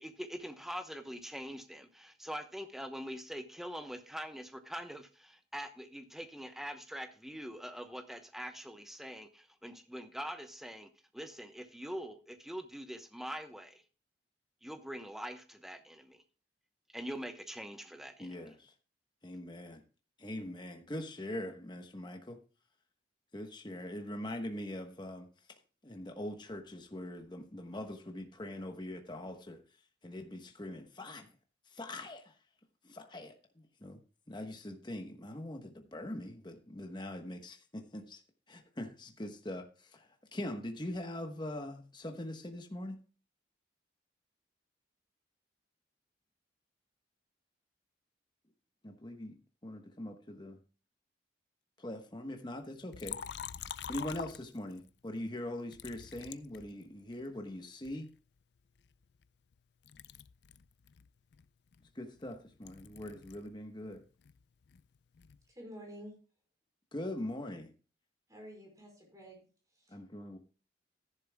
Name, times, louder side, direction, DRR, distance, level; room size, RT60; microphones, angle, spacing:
voice 1, 0.0-13.8 14.6-16.2 16.9-18.5, equal, ahead, 0.9 m, -44 dB
voice 2, 18.2-18.7 19.2-19.8 20.2-22.4 23.3-25.3 25.8-29.6 30.0-31.3 31.7-32.4 32.8-34.0 34.3-38.2 38.5-43.0 48.8-49.4 49.6-50.6 51.8-53.2 53.9-58.1 61.9-64.0 66.9-67.7 69.9-70.4, left 1 dB, 25° left, 1.1 m, -42 dB
Liquid, 52.9-54.9 55.7-57.3 57.8-59.6 59.8-63.5 63.8-65.4, left 8 dB, 60° left, 0.4 m, -47 dB
voice 3, 65.5-66.2 68.3-69.5 69.7-70.0, equal, 20° right, 4.6 m, -50 dB
14.0 x 11.0 x 2.2 m
head